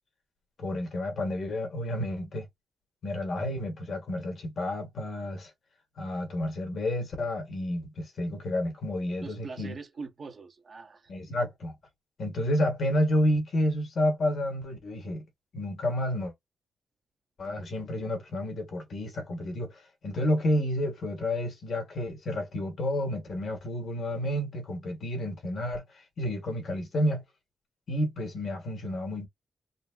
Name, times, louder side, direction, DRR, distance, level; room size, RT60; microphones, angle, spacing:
voice 1, 0.6-2.5 3.0-5.5 6.0-9.7 11.1-11.8 12.2-15.2 15.5-16.3 17.4-25.8 26.2-27.2 27.9-29.3, left 1 dB, 55° left, 1.5 m, -30 dB
voice 2, 9.2-11.1, right 4 dB, 40° right, 1.1 m, -42 dB
3.9 x 2.1 x 2.3 m
wide cardioid pair, 145°, 0 cm